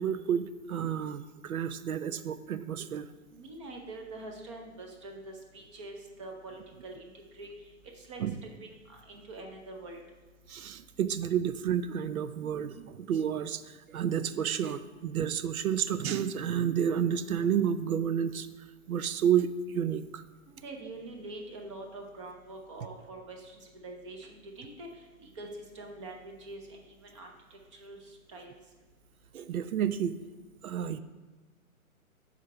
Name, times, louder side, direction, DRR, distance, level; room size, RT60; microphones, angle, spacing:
voice 1, 0.0-3.1 8.2-8.3 10.5-13.6 13.9-18.5 18.9-20.2 29.3-30.2 30.6-31.0, right 8 dB, 80° right, 13 dB, 0.5 m, -30 dB
voice 2, 3.3-7.5 8.0-10.0 20.5-24.9 25.2-25.5 25.7-28.5, right 2 dB, 20° right, 2 dB, 0.6 m, -45 dB
7.2 x 4.0 x 4.5 m, 1.2 s
hypercardioid pair, 135°, 42 cm